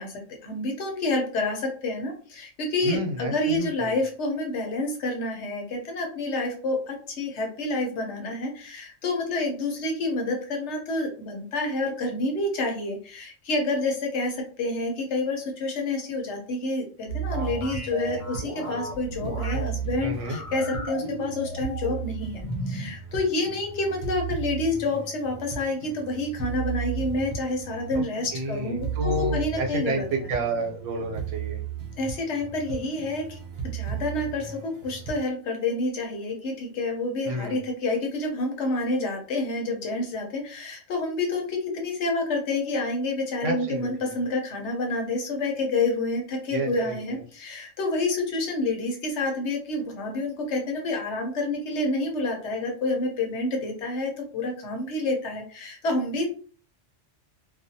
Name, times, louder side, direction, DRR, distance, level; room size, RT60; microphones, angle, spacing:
voice 1, 0.0-30.3 32.0-33.4 33.7-56.3, left 2 dB, 70° left, 2 dB, 1.0 m, -28 dB
voice 2, 2.8-3.9 20.0-20.4 27.9-28.0 28.3-31.6 37.3-37.6 43.4-44.1 46.5-47.2, right 2 dB, 85° right, 2 dB, 1.0 m, -30 dB
sound 1, 17.1-35.2, right 7 dB, 60° right, 0.8 m, -35 dB
sound 2, 17.3-19.7 20.2-22.0 22.4-22.9, equal, 35° left, 0.6 m, -35 dB
2.5 x 2.2 x 2.6 m, 0.41 s
omnidirectional pair, 1.2 m